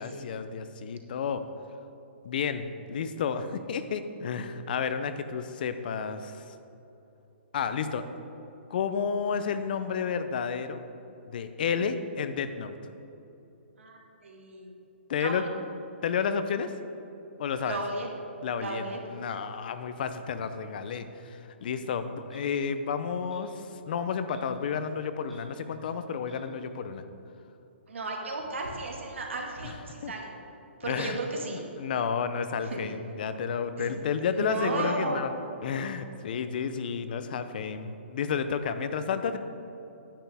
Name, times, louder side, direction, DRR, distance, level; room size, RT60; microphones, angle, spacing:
voice 1, 0.0-1.4 2.2-6.5 7.5-8.1 8.7-10.8 11.3-12.7 15.1-15.4 16.0-16.7 17.4-17.8 18.4-27.0 29.6-29.7 30.0-30.1 30.9-31.2 31.5-35.3 35.6-39.4, left 6 dB, 50° left, 10 dB, 0.6 m, -31 dB
voice 2, 13.8-14.7 15.2-15.5 17.6-18.1 18.6-19.0 27.9-30.3 30.8-31.6 32.6-32.9 33.8-33.9 34.2-35.2, right 2 dB, 85° right, 0 dB, 1.9 m, -34 dB
Clock, 22.3-22.5 23.3-23.4 24.3-24.5 24.8-24.9 25.2-25.4 26.3-26.4, equal, ahead, 2.0 m, -56 dB
10.0 x 9.3 x 3.5 m, 3.0 s
hypercardioid pair, 160°, 6 cm